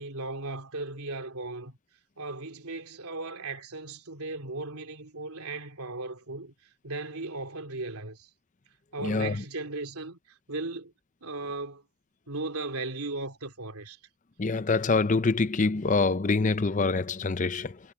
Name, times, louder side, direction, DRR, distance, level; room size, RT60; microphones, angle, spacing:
voice 1, 0.0-1.8 2.2-8.3 8.9-10.9 11.2-11.8 12.3-14.0, right 2 dB, 80° right, 3.1 m, -37 dB
voice 2, 9.0-9.4 14.4-17.8, left 3 dB, 35° left, 0.6 m, -25 dB
head